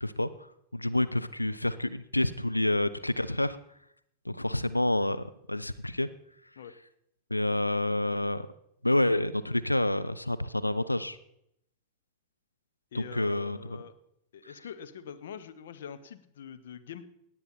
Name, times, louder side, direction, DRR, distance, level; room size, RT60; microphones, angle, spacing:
voice 1, 0.0-3.6 4.3-6.1 7.3-8.5 8.8-11.2 12.9-13.8 14.4-14.5, left 1 dB, 85° left, 13 dB, 0.4 m, -28 dB
voice 2, 12.9-13.9 14.3-17.0, left 8 dB, 60° left, 10 dB, 0.9 m, -44 dB
17.5 x 8.9 x 4.3 m, 0.75 s
figure-of-eight pair, 90°, 0 cm